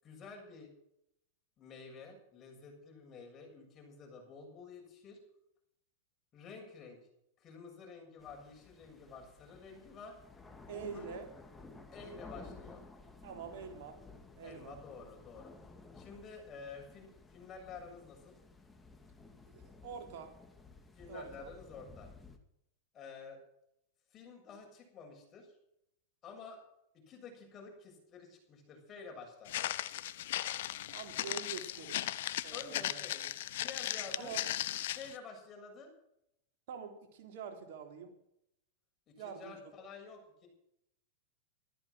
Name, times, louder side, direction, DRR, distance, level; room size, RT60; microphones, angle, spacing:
voice 1, 0.0-0.7 1.6-5.2 6.3-7.0 7.4-10.2 10.6-11.2 11.9-12.8 14.4-15.5 15.9-18.4 20.9-22.1 22.9-23.4 24.1-25.5 26.2-26.6 26.9-29.6 32.5-34.3 34.9-35.9 39.1-40.5, left 4 dB, 30° left, 1 dB, 7.2 m, -50 dB
sound 1, 8.2-22.4, left 3 dB, 10° left, 2.3 m, -55 dB
voice 2, 10.7-11.3 13.2-14.0 14.4-14.8 19.5-20.3 21.1-21.5 30.9-32.0 32.4-33.0 34.2-34.4 36.7-38.1 39.2-39.6, right 6 dB, 65° right, 4 dB, 3.4 m, -45 dB
Walk footsteps, 29.5-35.1, left 13 dB, 70° left, 0.9 m, -37 dB
14.5 x 13.0 x 6.3 m, 0.77 s
hypercardioid pair, 110°, 0 cm